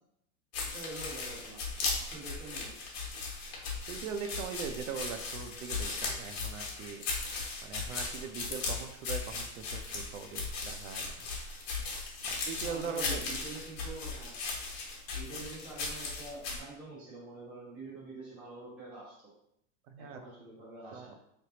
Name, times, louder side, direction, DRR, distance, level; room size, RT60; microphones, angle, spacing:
sound 1, 0.5-16.6, left 4 dB, 45° left, 1.1 m, -37 dB
voice 1, 0.6-1.6 2.1-2.7 12.6-14.3 15.1-19.2 20.0-21.1, right 2 dB, 5° right, -10 dB, 0.4 m, -46 dB
voice 2, 3.9-7.1 7.6-11.1 12.2-13.2 19.9-20.2 20.9-21.1, right 6 dB, 65° right, 6 dB, 0.6 m, -41 dB
4.1 x 3.4 x 2.8 m, 0.75 s
supercardioid pair, 175°, 41 cm